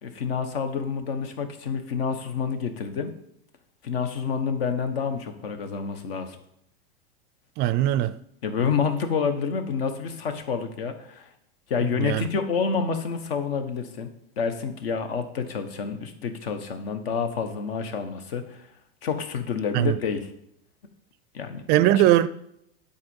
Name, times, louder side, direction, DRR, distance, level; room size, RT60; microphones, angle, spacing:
voice 1, 0.0-3.1 3.8-6.4 8.4-11.3 11.7-14.1 14.4-18.7 19.0-20.3 21.3-21.6, left 6 dB, 75° left, 1.5 m, -28 dB
voice 2, 7.6-8.1 12.0-12.2 19.7-19.9 21.7-22.3, right 13 dB, 35° right, 0.4 m, -20 dB
9.7 x 4.3 x 7.2 m
supercardioid pair, 130°, 30 cm